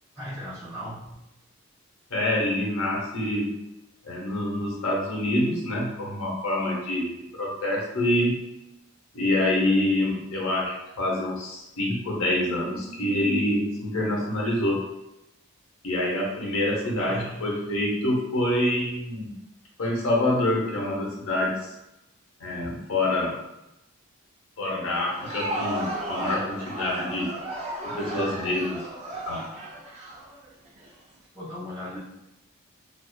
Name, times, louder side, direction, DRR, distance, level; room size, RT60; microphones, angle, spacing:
voice 1, 0.1-1.1 16.7-17.6 31.3-32.0, equal, 5° right, -15 dB, 0.9 m, -37 dB
voice 2, 2.1-3.6 4.0-8.4 9.1-14.8 15.8-19.3 19.8-21.7 22.4-23.4 24.6-27.4 27.8-28.9 29.3-29.5, left 1 dB, 75° left, -3 dB, 0.7 m, -26 dB
Crowd, 25.0-30.9, right 1 dB, 30° right, 0.3 m, -34 dB
2.4 x 2.3 x 2.2 m, 0.91 s
head